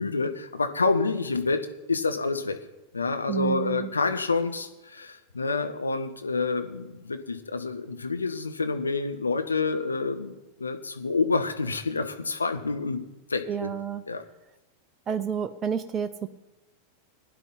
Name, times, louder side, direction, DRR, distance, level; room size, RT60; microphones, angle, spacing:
voice 1, 0.0-1.6 1.9-2.6 2.9-13.0 13.3-13.7 14.1-14.2, left 4 dB, 75° left, 8 dB, 1.0 m, -28 dB
voice 2, 3.3-3.9 13.5-14.0 15.1-16.3, right 8 dB, 25° right, 11 dB, 0.6 m, -30 dB
17.0 x 10.5 x 4.0 m, 1.0 s
figure-of-eight pair, 90°, 0 cm